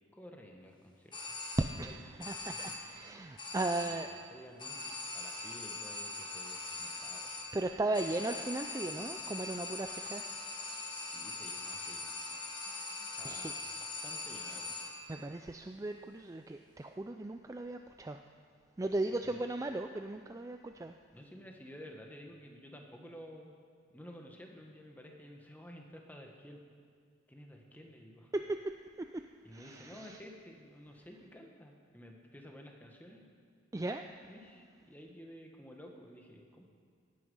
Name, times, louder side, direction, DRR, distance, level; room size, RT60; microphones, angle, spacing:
voice 1, 0.1-1.3 1.7-2.7 4.3-7.3 11.1-12.2 13.2-14.8 19.1-19.4 21.1-23.6 23.9-26.6 27.3-28.3 29.4-33.2 33.8-36.6, equal, 10° left, 1 dB, 1.3 m, -52 dB
sound 1, 1.1-1.9 2.2-3.0 3.4-4.2 4.6-15.1, left 3 dB, 25° left, 1.5 m, -42 dB
voice 2, 2.2-4.1 7.5-10.2 13.2-13.5 15.1-18.2 18.8-20.9 28.3-29.2 29.5-30.2 33.7-34.0, right 2 dB, 15° right, 6 dB, 0.3 m, -37 dB
17.5 x 9.8 x 5.5 m, 2.1 s
head